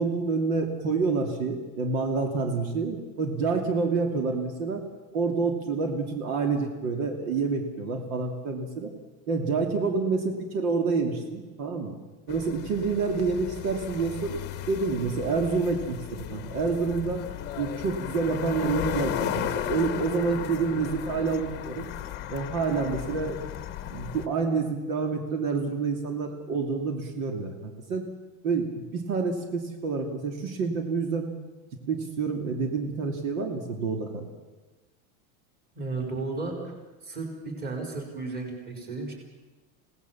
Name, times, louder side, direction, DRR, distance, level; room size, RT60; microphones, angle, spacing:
voice 1, 0.0-4.8 5.1-8.9 9.3-11.9 12.3-14.4 14.7-17.2 17.6-21.9 22.3-23.4 23.9-28.1 28.4-31.3 31.9-34.3, right 4 dB, 65° right, 3 dB, 2.9 m, -28 dB
sound 1, 12.3-24.3, left 11 dB, 25° left, 1.0 m, -35 dB
voice 2, 35.7-36.7 37.0-39.1, right 3 dB, 20° right, 1 dB, 4.5 m, -34 dB
28.5 x 18.0 x 7.2 m, 1.2 s
supercardioid pair, 175°, 44 cm